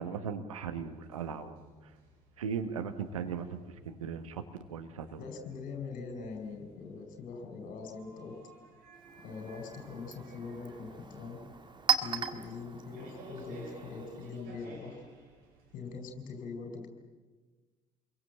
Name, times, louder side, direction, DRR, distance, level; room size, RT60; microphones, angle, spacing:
voice 1, 0.0-1.6 2.4-3.6 3.8-4.4 4.7-5.2, right 6 dB, 75° right, 8 dB, 1.5 m, -37 dB
sound 1, 0.7-16.0, right 3 dB, 60° right, 5.9 m, -56 dB
voice 2, 5.2-8.3 9.2-11.4 12.0-15.0 15.7-16.9, left 4 dB, 55° left, 4 dB, 4.7 m, -42 dB
Chink clink, 8.9-14.5, right 7 dB, 25° right, 2.0 m, -37 dB
27.5 x 22.5 x 7.6 m, 1.3 s
figure-of-eight pair, 50°, 17 cm